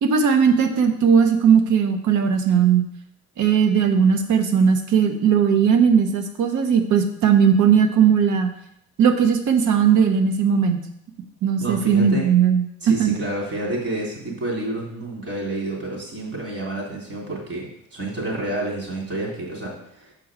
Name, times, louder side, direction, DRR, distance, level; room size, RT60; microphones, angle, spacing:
voice 1, 0.0-2.8 3.4-8.5 9.0-10.8 11.4-12.6 13.0-13.2, right 7 dB, 75° right, 6 dB, 1.0 m, -18 dB
voice 2, 11.6-12.3 12.8-20.1, right 2 dB, 50° right, -2 dB, 3.0 m, -29 dB
6.6 x 4.6 x 4.9 m, 0.74 s
cardioid pair, 90°, 30 cm